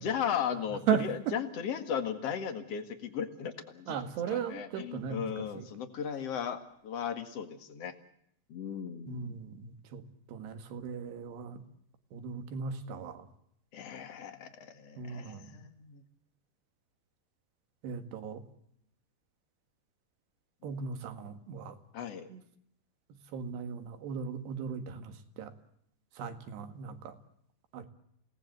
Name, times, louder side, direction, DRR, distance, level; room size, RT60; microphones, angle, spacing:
voice 1, 0.0-7.9 8.5-9.4 13.7-16.0 20.6-20.9 21.9-22.3, left 8 dB, 50° left, 8 dB, 2.2 m, -37 dB
voice 2, 0.9-1.4 3.9-5.7 9.1-10.0 10.3-11.6 12.1-13.3 15.0-15.5 17.8-18.4 20.6-21.8 22.3-22.4 23.3-25.5 26.2-27.1 27.7-27.9, right 7 dB, 75° right, 8 dB, 3.9 m, -36 dB
29.5 x 18.5 x 7.9 m, 0.72 s
omnidirectional pair, 4.9 m